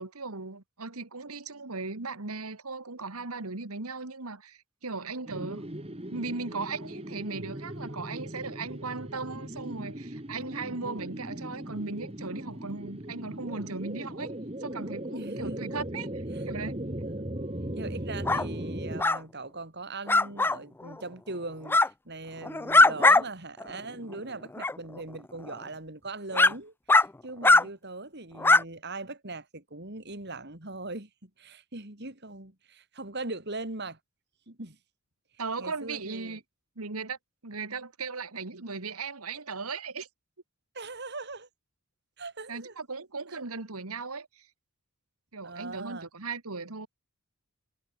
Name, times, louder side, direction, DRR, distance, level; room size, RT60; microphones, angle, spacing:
voice 1, 0.0-5.6 6.1-16.8 35.4-36.4 36.8-37.2 37.4-40.1 42.5-44.5 45.3-46.9, right 4 dB, 80° right, 2.1 m, -37 dB
sound 1, 5.3-19.0, right 1 dB, 25° right, 2.4 m, -38 dB
voice 2, 15.1-15.6 16.3-16.4 17.1-17.3 17.7-34.0 34.5-34.8 35.6-36.4 40.7-41.5 42.2-42.8 43.3-43.4 45.4-46.1, right 2 dB, 50° right, 3.7 m, -40 dB
sound 2, 18.3-18.4 19.0-19.2 20.1-20.6 21.7-21.9 22.4-23.2 23.6-23.7 24.6-24.7 25.5-25.6 26.3-26.5 26.9-27.0 27.4-27.6 28.4-28.6, left 2 dB, 10° left, 0.3 m, -20 dB
head